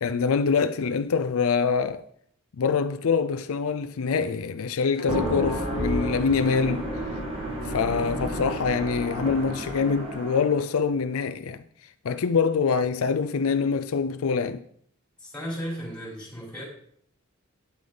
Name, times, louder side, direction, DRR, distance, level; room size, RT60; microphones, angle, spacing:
voice 1, 0.0-2.0 2.6-6.9 7.6-11.6 12.0-14.6, left 5 dB, 75° left, 0.5 m, -25 dB
sound 1, 5.0-10.6, equal, 25° right, 1.9 m, -31 dB
voice 2, 15.2-16.6, equal, 5° left, 4.3 m, -35 dB
9.6 x 8.3 x 3.9 m
head